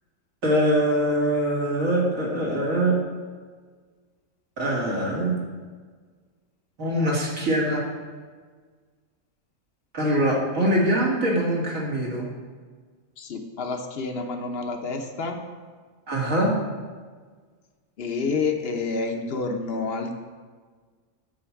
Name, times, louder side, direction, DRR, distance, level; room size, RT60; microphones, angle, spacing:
voice 1, 0.4-3.0 4.6-5.3 6.8-7.8 9.9-12.3 16.1-16.5, right 1 dB, 75° right, -3 dB, 2.3 m, -23 dB
voice 2, 13.2-15.4 18.0-20.2, left 4 dB, 50° left, 5 dB, 1.0 m, -28 dB
9.0 x 4.5 x 7.1 m, 1.5 s
omnidirectional pair, 1.4 m